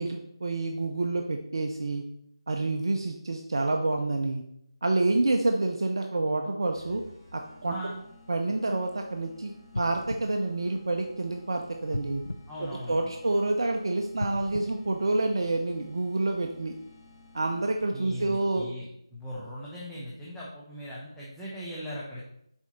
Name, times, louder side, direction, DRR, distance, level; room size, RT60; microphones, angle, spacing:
voice 1, 0.0-2.0 2.5-4.4 4.8-7.0 7.3-7.9 8.3-12.2 12.6-16.7 17.3-18.7, right 2 dB, 55° right, 3 dB, 0.6 m, -28 dB
sound 1, 6.7-18.2, left 2 dB, 35° left, 1.7 m, -54 dB
voice 2, 7.7-8.0 12.5-13.0 17.9-18.9 19.1-22.2, equal, 5° left, -9 dB, 0.7 m, -39 dB
sound 2, 9.7-11.4 11.9-13.5 14.1-15.8 16.3-16.4, left 2 dB, 70° left, 0.4 m, -39 dB
7.1 x 4.4 x 4.1 m, 0.75 s
figure-of-eight pair, 160°, 3 cm